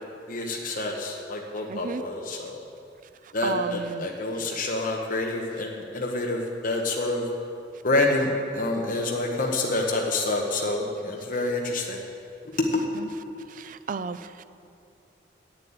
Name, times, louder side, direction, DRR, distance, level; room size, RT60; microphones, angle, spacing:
voice 1, 0.3-2.6 3.3-7.2 7.8-12.0 12.6-12.8, left 2 dB, 50° left, 0 dB, 1.0 m, -27 dB
voice 2, 1.7-2.0 3.4-4.1 12.9-13.1 13.5-14.4, right 5 dB, 45° right, 13 dB, 0.4 m, -33 dB
8.6 x 7.6 x 8.7 m, 2.5 s
head